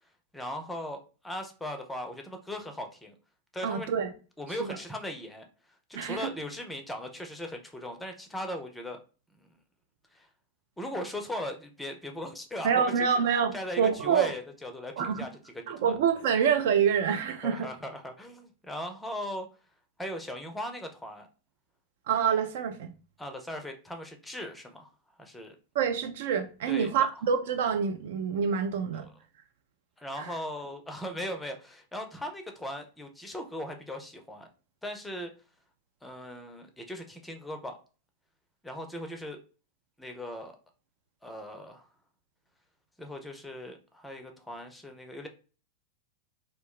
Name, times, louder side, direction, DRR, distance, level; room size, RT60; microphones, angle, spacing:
voice 1, 0.3-1.0 1.2-3.1 3.5-3.9 4.4-5.5 5.9-9.0 9.4-9.5 10.1-10.3 10.8-13.1 13.5-15.3 15.6-15.9 17.4-19.5 20.0-21.3 23.2-24.9 25.2-25.6 26.7-27.1 29.0-29.1 30.0-34.5 34.8-35.3 36.0-37.8 38.6-39.4 40.0-40.5 41.2-41.8 43.0-45.3, left 1 dB, 5° left, 0.5 m, -38 dB
voice 2, 3.6-4.1 4.6-4.8 5.9-6.3 12.6-14.3 15.0-15.3 15.7-17.7 22.1-22.9 25.7-29.0 30.2-30.3, right 7 dB, 55° right, 0.4 m, -27 dB
2.3 x 2.1 x 3.7 m
figure-of-eight pair, 90°, 0 cm